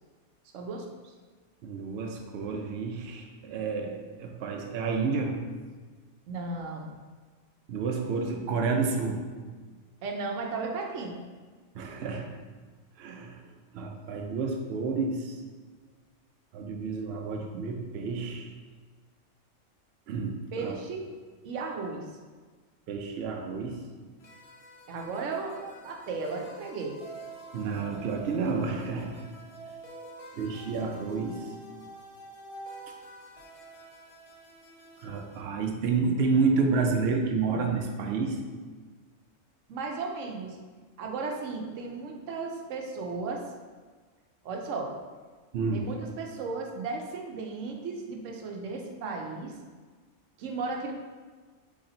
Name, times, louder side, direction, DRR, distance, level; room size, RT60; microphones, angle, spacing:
voice 1, 0.5-0.9 6.3-6.9 10.0-11.2 20.5-21.1 21.4-22.1 24.9-27.0 39.7-40.6 41.0-43.5 44.4-44.9 45.7-49.5 50.4-50.9, right 4 dB, 90° right, 2 dB, 1.0 m, -35 dB
voice 2, 1.6-5.4 7.7-9.3 11.7-12.3 13.0-13.4 13.7-15.3 16.5-18.5 20.1-20.8 22.9-23.8 27.5-29.2 30.3-31.4 35.0-38.4 45.5-45.9, right 4 dB, 65° right, 2 dB, 0.8 m, -30 dB
sound 1, 24.2-35.5, right 2 dB, 45° left, 0.5 m, -48 dB
4.2 x 3.3 x 3.8 m, 1.4 s
omnidirectional pair, 1.3 m